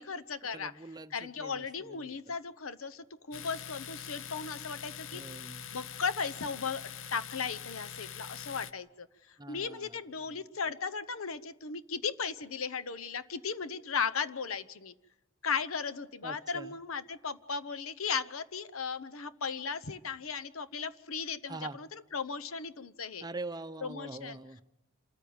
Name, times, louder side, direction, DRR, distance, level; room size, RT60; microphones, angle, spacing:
voice 1, 0.0-0.7 1.1-6.8 7.1-14.9 15.4-23.3 23.8-24.4, left 5 dB, 80° left, 12 dB, 1.0 m, -36 dB
voice 2, 0.5-2.2 5.1-5.7 9.4-10.0 10.3-10.4 16.2-16.8 21.5-21.8 23.2-24.6, right 2 dB, 20° right, 10 dB, 0.7 m, -44 dB
Domestic sounds home sounds, 3.3-8.7, left 8 dB, 60° left, 0.7 m, -44 dB
27.0 x 14.5 x 8.8 m, 0.93 s
head